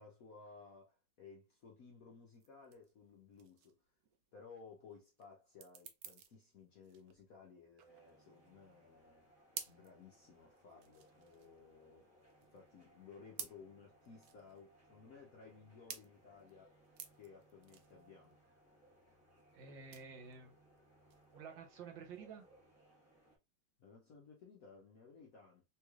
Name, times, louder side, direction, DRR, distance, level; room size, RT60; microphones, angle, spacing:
voice 1, 0.0-3.8 4.3-9.3 9.7-12.1 12.5-16.8 17.2-18.4 23.8-25.6, left 5 dB, 60° left, 0.9 m, -58 dB
sound 1, 2.3-22.1, right 8 dB, 90° right, 0.8 m, -54 dB
sound 2, 7.9-23.4, right 1 dB, 10° right, 1.2 m, -68 dB
voice 2, 19.5-20.5 21.3-22.5, right 5 dB, 70° right, 1.6 m, -51 dB
3.5 x 3.2 x 2.4 m
omnidirectional pair, 2.2 m